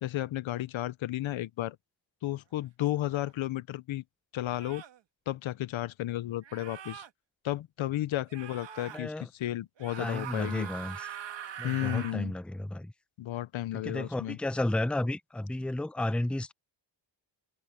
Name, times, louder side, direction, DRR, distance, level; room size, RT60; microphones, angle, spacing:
voice 1, 0.0-1.8 2.2-4.0 4.3-4.8 5.3-7.0 7.4-10.7 11.6-12.3 13.2-14.4, left 14 dB, 75° left, 0.8 m, -33 dB
sound 1, 3.1-3.3 4.5-5.0 6.4-7.1 8.3-9.0 9.8-12.2, right 9 dB, 65° right, 1.8 m, -43 dB
voice 2, 8.9-9.3 10.0-11.1 11.6-12.9 13.7-16.5, left 1 dB, ahead, 0.7 m, -32 dB
cardioid pair, 105°, 47 cm